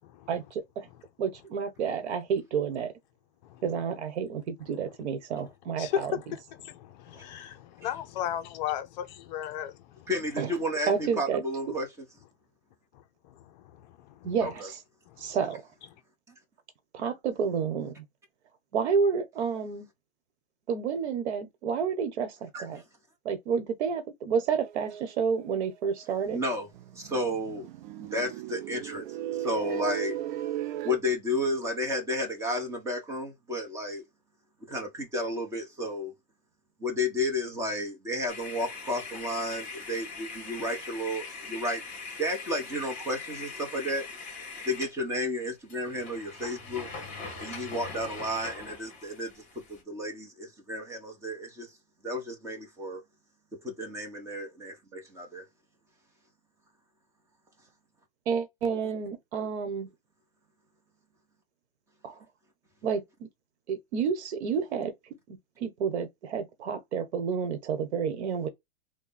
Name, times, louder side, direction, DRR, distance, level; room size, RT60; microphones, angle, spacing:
voice 1, 0.3-0.9 1.2-2.9 3.6-6.1 10.4-10.5 10.9-11.4 14.2-14.8 15.2-15.6 16.9-18.0 18.7-19.9 20.7-22.8 23.2-26.4 58.3-59.9 62.0-62.2 62.8-63.3 63.7-64.9 65.3-68.5, right 6 dB, 80° right, 1.1 m, -30 dB
voice 2, 5.8-9.8 14.1-14.3, left 10 dB, 40° left, 0.5 m, -34 dB
voice 3, 10.1-11.9 14.4-14.7 22.5-22.6 26.3-26.7 26.9-27.7 28.0-29.1 29.4-30.2 30.8-34.0 34.7-36.1 36.8-41.8 42.2-44.1 44.7-46.9 47.4-49.4 49.7-51.7 52.0-53.0 53.6-55.4, left 1 dB, 10° right, 0.9 m, -32 dB
sound 1, 24.6-25.7 26.0-26.1 26.3-26.5 26.7-31.0, right 12 dB, 50° right, 0.4 m, -36 dB
sound 2, 38.3-45.0 45.4-45.5 45.7-49.8, left 4 dB, 20° left, 1.9 m, -41 dB
3.3 x 2.2 x 3.9 m
supercardioid pair, 155°, 33 cm